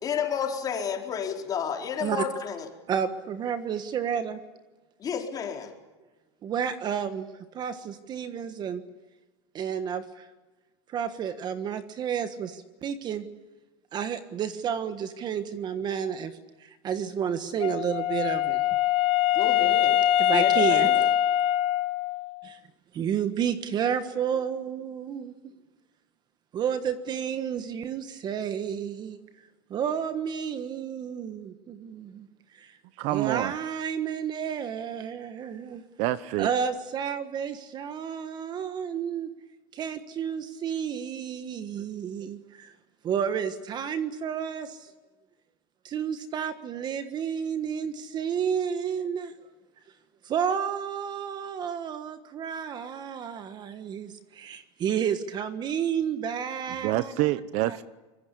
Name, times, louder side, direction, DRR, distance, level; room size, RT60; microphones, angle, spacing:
voice 1, 0.0-2.7 5.0-5.7 19.3-20.0 20.3-21.1, left 7 dB, 25° left, 4.3 m, -31 dB
voice 2, 2.9-4.4 6.4-7.3 7.5-8.8 9.5-10.3 10.9-13.3 13.9-18.6 20.2-20.9 22.4-22.6 22.9-25.3 26.5-29.2 29.7-32.8 33.1-35.8 36.4-39.3 39.7-42.7 43.0-44.9 45.8-49.3 50.2-57.1 57.6-57.8, right 8 dB, 30° right, 1.5 m, -31 dB
Wind instrument woodwind instrument, 17.6-22.4, left 12 dB, 40° left, 1.1 m, -23 dB
voice 3, 33.0-33.5 36.0-36.5 56.8-57.8, right 16 dB, 50° right, 0.9 m, -27 dB
25.0 x 23.0 x 8.5 m
supercardioid pair, 140°, 14 cm